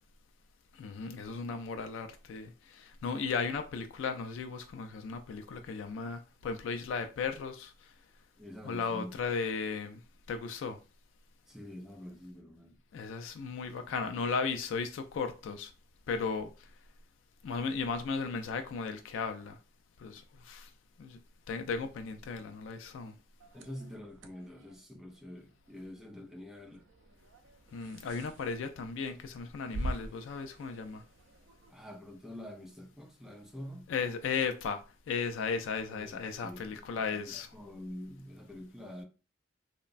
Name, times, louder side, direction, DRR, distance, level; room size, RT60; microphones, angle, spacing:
voice 1, 0.7-7.7 8.6-10.0 10.3-10.8 12.9-15.7 16.1-16.5 17.4-19.6 20.0-20.7 21.0-21.2 21.5-23.1 27.7-31.0 33.9-34.8 35.1-37.5, left 5 dB, 85° left, 0.3 m, -35 dB
voice 2, 8.4-9.1 11.5-12.8 23.5-26.8 31.7-33.9 35.9-39.0, left 1 dB, 5° right, 0.4 m, -46 dB
sound 1, 23.4-31.7, right 1 dB, 70° right, 0.4 m, -45 dB
3.0 x 2.1 x 2.4 m
head